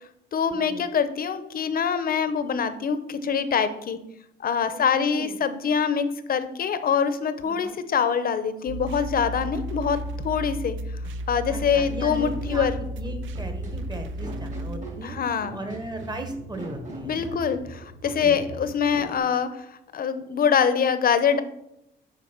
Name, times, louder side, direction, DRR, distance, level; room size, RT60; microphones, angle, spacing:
voice 1, 0.3-4.0 4.4-10.0 10.2-10.8 11.3-12.8 15.0-15.6 17.0-21.4, left 7 dB, 50° left, 11 dB, 0.7 m, -24 dB
voice 2, 4.7-5.3 7.4-7.8 11.5-15.2 15.5-17.4 18.2-18.4, right 1 dB, 20° right, 6 dB, 1.2 m, -37 dB
sound 1, 8.7-14.8, equal, 75° right, 0.5 m, -33 dB
sound 2, 12.1-19.2, right 2 dB, 40° right, 2.5 m, -40 dB
7.2 x 4.9 x 4.4 m, 0.83 s
cardioid pair, 90°, 20 cm